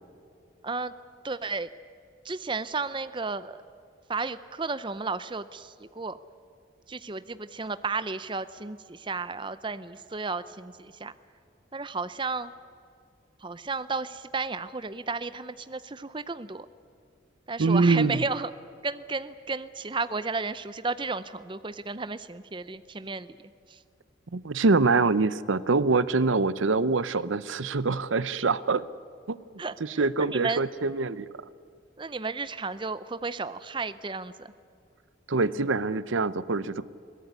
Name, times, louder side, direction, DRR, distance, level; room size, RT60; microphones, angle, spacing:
voice 1, 1.2-1.7 2.2-3.6 4.1-6.2 6.9-11.1 11.7-12.5 13.4-16.7 17.5-18.5 18.8-23.3 29.6-29.7 30.2-30.6 32.0-34.5, right 4 dB, 25° right, 13 dB, 0.6 m, -33 dB
voice 2, 17.6-18.3 24.3-28.8 29.3-29.4 29.8-31.3 35.3-36.9, right 3 dB, 80° right, 16 dB, 0.7 m, -24 dB
22.5 x 18.0 x 9.7 m, 2.4 s
head